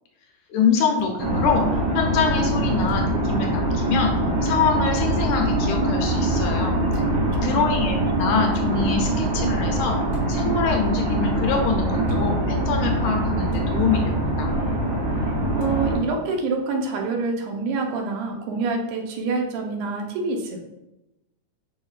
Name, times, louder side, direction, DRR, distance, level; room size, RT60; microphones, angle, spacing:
voice 1, 0.5-4.1 4.4-6.8 7.4-10.0 10.3-14.5, left 6 dB, 75° left, 1 dB, 1.9 m, -25 dB
sound 1, 1.0-1.1 2.9-3.1 5.0-5.1 6.9-7.2 8.5-8.7 10.1-10.5 12.0-12.3 13.5-13.7 15.6-15.8, right 1 dB, 35° right, 1.0 m, -40 dB
sound 2, 1.2-16.0, right 1 dB, 65° right, 1.7 m, -23 dB
voice 2, 7.2-7.8 15.6-20.6, right 3 dB, 85° right, 2 dB, 2.2 m, -27 dB
5.0 x 4.5 x 2.4 m, 0.92 s
omnidirectional pair, 3.5 m